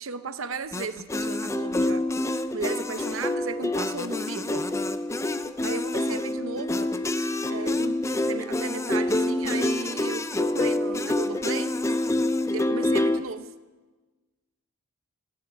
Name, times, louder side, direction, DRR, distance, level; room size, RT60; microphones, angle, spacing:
voice 1, 0.0-2.0 2.5-4.7 5.6-6.9 7.5-11.8 12.5-13.5, right 4 dB, 70° right, 11 dB, 0.7 m, -35 dB
sound 1, 0.7-13.2, left 1 dB, 15° left, 0.4 m, -27 dB
14.5 x 11.0 x 8.8 m, 1.2 s
head